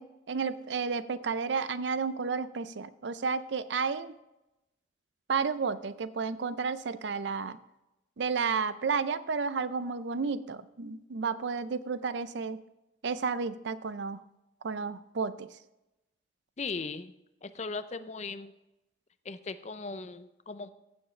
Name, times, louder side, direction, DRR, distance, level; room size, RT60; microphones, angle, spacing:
voice 1, 0.0-4.2 5.3-7.6 8.2-12.6 13.0-14.2 14.6-15.5, right 5 dB, 70° right, 14 dB, 0.5 m, -32 dB
voice 2, 16.6-17.1 17.4-18.5 19.2-20.7, left 4 dB, 35° left, 12 dB, 0.5 m, -38 dB
15.5 x 7.2 x 3.2 m, 0.94 s
head